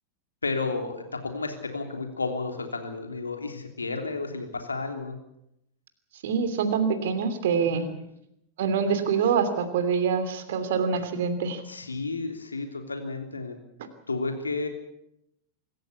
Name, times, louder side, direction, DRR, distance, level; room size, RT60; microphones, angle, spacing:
voice 1, 0.4-5.2 7.5-7.9 11.7-13.6 14.1-14.7, left 3 dB, 75° left, 5 dB, 3.3 m, -32 dB
voice 2, 6.2-7.9 8.6-11.6, right 6 dB, 55° right, 9 dB, 2.9 m, -25 dB
25.5 x 14.5 x 8.4 m, 0.80 s
figure-of-eight pair, 90°, 0 cm